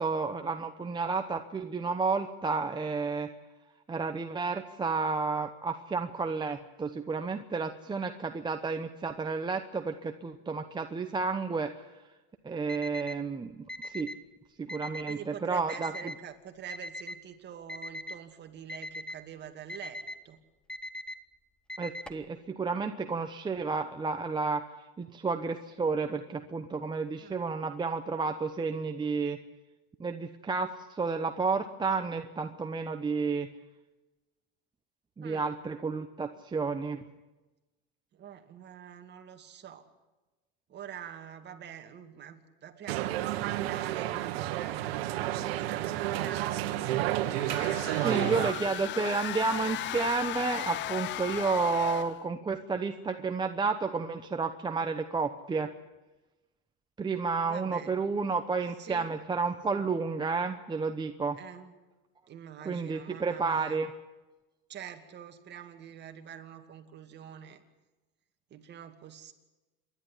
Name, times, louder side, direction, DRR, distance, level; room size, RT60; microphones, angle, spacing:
voice 1, 0.0-3.3 3.9-11.7 12.4-14.1 14.6-15.9 21.8-24.6 25.0-29.4 30.0-33.5 35.2-37.0 48.0-55.7 57.0-61.4 62.6-63.9, right 4 dB, 15° right, 6 dB, 1.0 m, -31 dB
Alarm, 12.7-13.2 13.7-14.2 14.7-15.2 15.7-16.2 16.7-17.2 17.7-18.2 18.7-19.2 19.7-20.2 20.7-21.2 21.7-22.2, left 1 dB, 5° left, 1.2 m, -40 dB
voice 2, 14.9-20.4 27.2-27.6 32.0-32.3 35.2-35.5 38.1-39.9 40.7-45.0 45.3-47.2 47.9-48.8 57.4-58.0 58.8-59.1 61.4-61.7 62.3-63.8 64.7-67.6 68.5-69.3, right 9 dB, 35° right, 6 dB, 2.4 m, -45 dB
sound 1, 42.9-48.5, right 14 dB, 80° right, 1.5 m, -31 dB
sound 2, 47.3-52.2, left 13 dB, 40° left, 0.7 m, -36 dB
27.5 x 11.5 x 10.0 m, 1.1 s
supercardioid pair, 125°, 30 cm